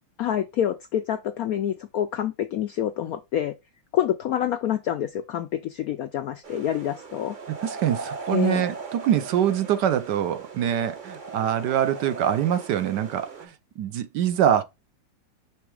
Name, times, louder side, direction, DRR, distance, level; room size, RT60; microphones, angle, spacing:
voice 1, 0.2-3.5 3.9-7.4 8.3-8.6, left 11 dB, 75° left, 0.8 m, -27 dB
sound 1, 6.4-13.5, right 4 dB, 35° right, 0.8 m, -38 dB
voice 2, 7.6-14.6, right 10 dB, 70° right, 1.2 m, -24 dB
6.0 x 3.5 x 4.7 m
omnidirectional pair, 2.0 m